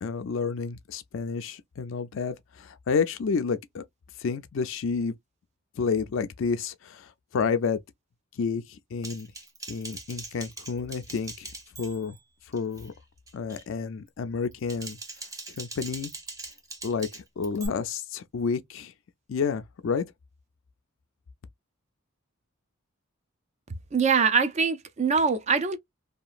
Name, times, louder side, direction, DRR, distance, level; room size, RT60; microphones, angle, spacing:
voice 1, 0.0-3.8 4.2-5.1 5.8-7.8 8.4-9.3 9.7-11.5 11.8-12.2 12.5-12.9 13.3-15.0 15.5-16.1 16.8-18.9 19.3-20.1, left 5 dB, 65° left, 0.4 m, -30 dB
Typing, 9.0-12.2 12.5-12.9 13.3-13.6 14.4-17.7, right 2 dB, 15° right, 0.7 m, -42 dB
voice 2, 23.9-25.8, right 5 dB, 30° right, 0.4 m, -23 dB
2.9 x 2.4 x 2.3 m
head